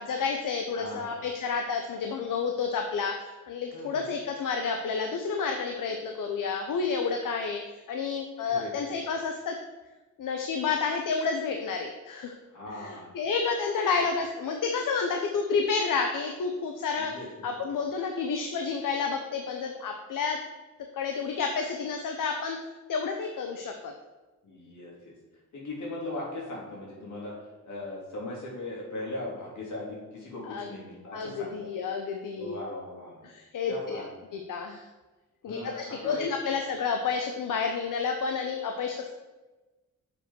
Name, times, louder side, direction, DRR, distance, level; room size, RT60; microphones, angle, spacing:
voice 1, 0.0-9.5 10.2-12.3 12.7-17.1 17.4-20.4 20.9-22.6 22.9-23.9 30.4-30.7 31.1-32.5 33.2-34.0 34.3-34.9 35.4-39.1, left 5 dB, 80° left, 4 dB, 0.8 m, -30 dB
voice 2, 0.7-1.2 3.7-4.0 8.4-8.7 12.5-13.2 17.0-17.3 17.6-17.7 24.4-25.1 25.5-27.4 27.6-31.7 32.3-33.2 33.7-34.1 35.4-36.3, left 2 dB, 65° left, -4 dB, 3.2 m, -39 dB
7.4 x 5.2 x 6.2 m, 1.2 s
wide cardioid pair, 150°, 32 cm